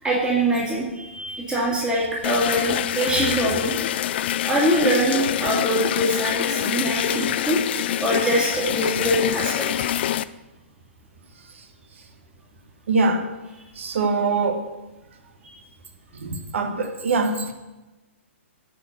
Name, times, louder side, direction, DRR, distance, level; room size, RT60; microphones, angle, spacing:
voice 1, 0.0-3.7 4.4-7.6 8.0-9.9 15.4-15.5, right 1 dB, 15° right, -5 dB, 2.4 m, -23 dB
sound 1, 2.2-10.2, left 12 dB, 55° left, 0.3 m, -25 dB
voice 2, 12.9-13.3 13.8-14.7 16.2-17.5, right 3 dB, 70° right, 7 dB, 1.3 m, -23 dB
9.9 x 4.8 x 5.9 m, 1.1 s
hypercardioid pair, 125°, 7 cm